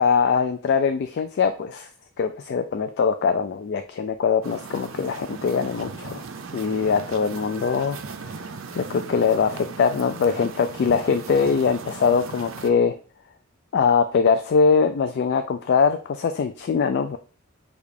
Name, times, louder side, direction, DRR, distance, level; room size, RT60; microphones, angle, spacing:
voice 1, 0.0-1.9 2.2-6.2 6.5-13.0 13.7-17.2, left 5 dB, 50° left, 8 dB, 0.3 m, -22 dB
sound 1, 4.4-12.7, right 4 dB, 65° right, 0.5 m, -38 dB
6.4 x 2.4 x 3.5 m, 0.39 s
head